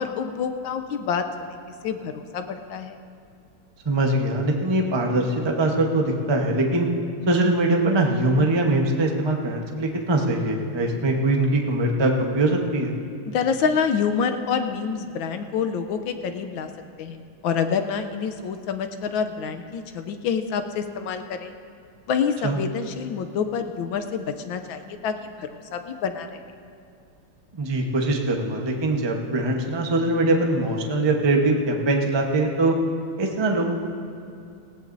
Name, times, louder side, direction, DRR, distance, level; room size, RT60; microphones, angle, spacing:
voice 1, 0.0-1.6 1.8-3.0 13.3-16.7 17.0-17.2 17.4-21.5 22.1-26.4, left 6 dB, 75° left, 8 dB, 1.3 m, -27 dB
voice 2, 3.8-6.9 7.3-12.9 22.4-22.6 27.5-32.7 33.2-33.8, right 2 dB, 25° right, 1 dB, 0.6 m, -22 dB
18.5 x 16.5 x 2.7 m, 2.5 s
omnidirectional pair, 2.4 m